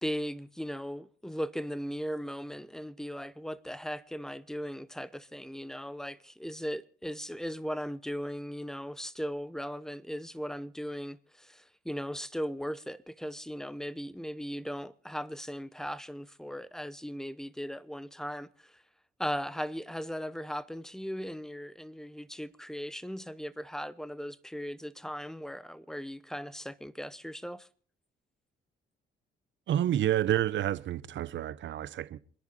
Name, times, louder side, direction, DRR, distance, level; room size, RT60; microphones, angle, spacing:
voice 1, 0.0-18.8 19.2-27.7, equal, 5° left, 0.8 m, -38 dB
voice 2, 29.7-32.2, right 11 dB, 70° right, 0.9 m, -29 dB
27.0 x 10.5 x 4.2 m
cardioid pair, 90°, 20 cm